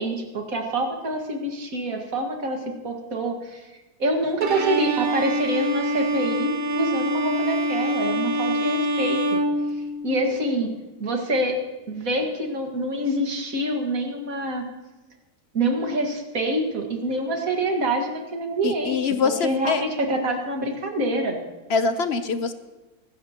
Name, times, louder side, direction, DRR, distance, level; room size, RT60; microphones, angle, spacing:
voice 1, 0.0-3.7 4.0-9.4 9.7-10.7 11.0-11.6 11.9-14.6 15.5-19.2 19.4-21.4, right 1 dB, 65° right, 2 dB, 2.2 m, -26 dB
Bowed string instrument, 4.4-10.3, right 1 dB, 80° right, 1.8 m, -25 dB
voice 2, 18.6-19.8 21.7-22.5, left 5 dB, 55° left, 10 dB, 0.9 m, -24 dB
24.0 x 13.0 x 2.9 m, 1.2 s
omnidirectional pair, 1.6 m